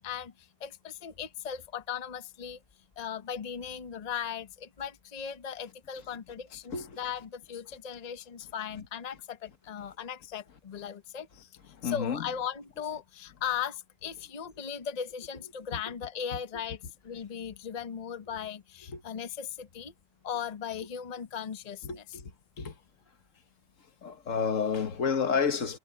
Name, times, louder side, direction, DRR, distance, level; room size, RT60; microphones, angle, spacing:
voice 1, 0.0-2.6 3.0-11.5 11.8-19.9 20.2-22.0, left 8 dB, 35° left, 0.9 m, -38 dB
voice 2, 11.7-12.3 18.9-19.0 21.8-22.3 22.6-22.8 24.0-25.8, left 6 dB, 85° left, 1.7 m, -30 dB
omnidirectional pair, 1.3 m